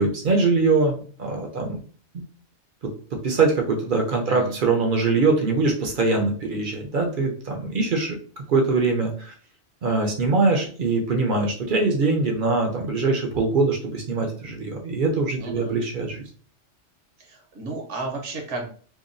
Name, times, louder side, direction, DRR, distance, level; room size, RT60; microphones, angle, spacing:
voice 1, 0.0-1.8 2.1-2.2 3.2-8.2 8.5-9.3 9.8-16.2, right 3 dB, 55° right, 1 dB, 0.6 m, -22 dB
voice 2, 15.4-15.7 17.2-18.7, right 3 dB, 70° right, 1 dB, 1.1 m, -33 dB
2.8 x 2.2 x 2.5 m, 0.44 s
omnidirectional pair, 1.3 m